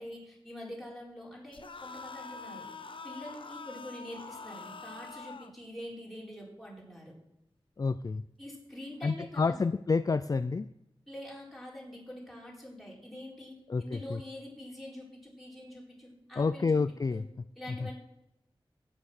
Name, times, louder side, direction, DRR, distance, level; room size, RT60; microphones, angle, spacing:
voice 1, 0.0-2.7 3.0-7.2 8.4-9.7 11.1-16.8 17.1-17.2 17.6-17.9, left 1 dB, ahead, -4 dB, 4.4 m, -45 dB
sound 1, 1.5-5.5, left 4 dB, 65° left, 0.9 m, -45 dB
voice 2, 7.8-8.2 9.0-10.7 13.7-14.2 16.4-17.3, left 4 dB, 40° left, 13 dB, 0.3 m, -29 dB
11.5 x 9.3 x 6.5 m, 0.83 s
wide cardioid pair, 90°, 9 cm